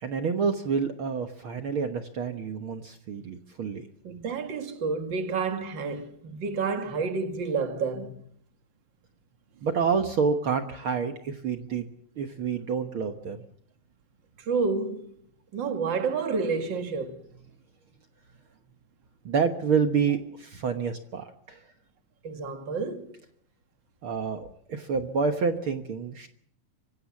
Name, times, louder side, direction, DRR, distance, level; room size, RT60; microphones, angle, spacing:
voice 1, 0.0-3.8 9.6-11.9 12.2-13.4 19.2-21.6 24.0-26.3, right 5 dB, 65° right, 1.3 m, -28 dB
voice 2, 4.0-8.3 14.4-15.2 15.5-17.3 22.2-23.2, right 4 dB, 40° right, 2.2 m, -30 dB
25.0 x 16.0 x 7.3 m
omnidirectional pair, 4.1 m